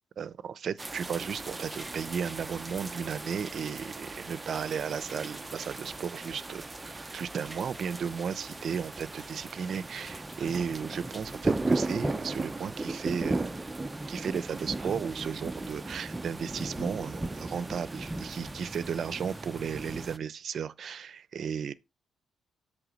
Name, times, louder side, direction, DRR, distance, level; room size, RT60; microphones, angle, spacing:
voice 1, 0.2-13.5 14.1-21.7, right 7 dB, 55° right, 0.7 m, -34 dB
sound 1, 0.8-20.2, right 2 dB, 15° right, 0.6 m, -36 dB
8.1 x 3.6 x 6.2 m
cardioid pair, 90°, 0 cm